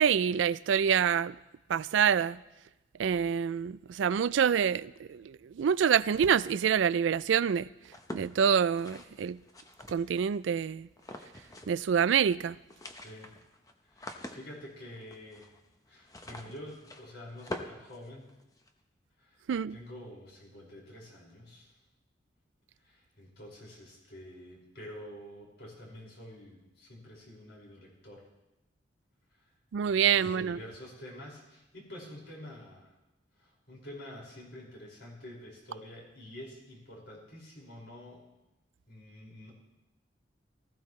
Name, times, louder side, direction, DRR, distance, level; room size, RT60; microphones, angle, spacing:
voice 1, 0.0-1.4 1.7-2.4 3.0-7.7 8.1-9.4 9.9-10.9 11.7-12.6 19.5-19.8 29.7-30.6, right 7 dB, 85° right, 0.4 m, -26 dB
sound 1, 7.9-10.4 11.0-11.9 12.1-12.2 12.5-18.7, left 1 dB, 20° left, 0.9 m, -45 dB
voice 2, 13.9-15.5 15.9-18.3 19.2-21.7 22.8-28.3 29.3-29.5 29.9-32.9 33.4-38.2 38.9-39.5, left 1 dB, 65° left, 5.5 m, -48 dB
19.5 x 15.0 x 3.2 m
head